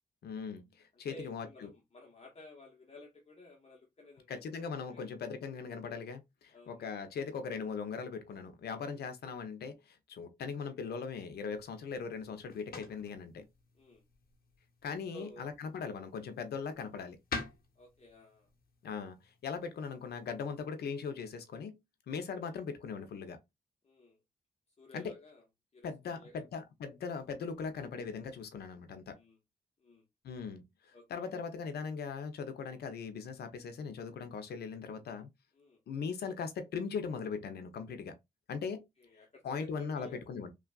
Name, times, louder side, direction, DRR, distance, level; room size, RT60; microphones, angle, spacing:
voice 1, 0.2-1.7 4.3-13.5 14.8-17.2 18.8-21.8 22.1-23.4 24.9-25.1 25.8-29.2 30.2-35.3 35.9-38.2 38.5-38.9 39.4-40.5, left 5 dB, 85° left, 0.6 m, -40 dB
voice 2, 1.1-4.6 4.9-5.1 6.5-6.9 10.4-10.5 13.7-14.0 15.1-15.5 17.8-18.5 22.4-22.6 23.8-24.2 24.8-25.4 25.7-26.4 29.2-29.4 29.8-30.1 30.9-31.3 35.5-35.8 39.0-40.2, left 1 dB, 40° left, 0.9 m, -54 dB
sound 1, 11.5-20.7, left 4 dB, 70° left, 1.0 m, -49 dB
3.2 x 2.4 x 2.2 m
cardioid pair, 70°, 16 cm